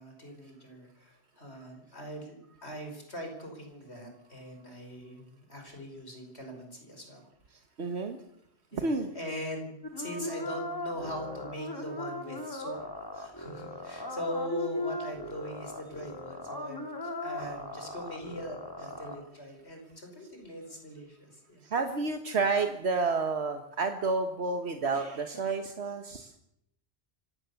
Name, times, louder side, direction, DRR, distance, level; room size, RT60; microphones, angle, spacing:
voice 1, 0.0-7.2 8.7-8.9 9.1-12.8 13.2-16.9 17.2-21.6, equal, 85° left, 4 dB, 5.6 m, -41 dB
voice 2, 7.8-8.2 8.7-9.1 21.6-26.3, right 4 dB, 80° right, 6 dB, 1.6 m, -30 dB
sound 1, 9.8-19.2, left 2 dB, 20° left, 2.9 m, -38 dB
25.0 x 16.5 x 7.1 m, 0.79 s
omnidirectional pair, 1.1 m